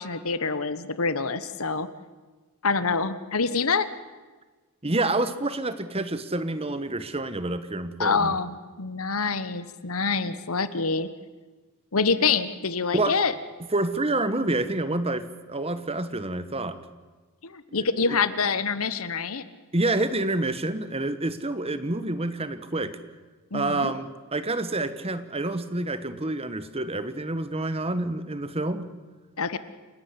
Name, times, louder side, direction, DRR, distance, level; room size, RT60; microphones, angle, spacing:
voice 1, 0.0-1.9 2.6-3.9 8.0-11.1 11.9-13.3 17.4-19.4 23.5-23.9 29.4-29.6, left 4 dB, 70° left, 14 dB, 1.2 m, -26 dB
voice 2, 4.8-8.3 12.9-13.2 13.7-16.8 17.8-18.2 19.7-23.0 23.5-28.9, right 2 dB, 25° right, 12 dB, 1.2 m, -28 dB
28.0 x 12.5 x 9.7 m, 1.3 s
head